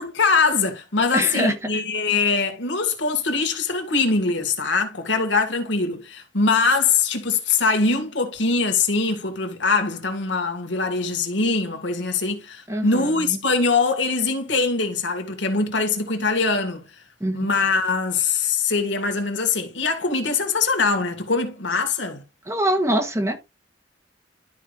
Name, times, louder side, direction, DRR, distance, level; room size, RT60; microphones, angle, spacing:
voice 1, 0.0-16.8 17.3-22.2, left 4 dB, 85° left, 1.9 m, -22 dB
voice 2, 1.1-1.5 12.7-13.4 17.2-17.5 22.5-23.4, right 1 dB, 15° right, 1.3 m, -24 dB
12.5 x 4.9 x 2.5 m
head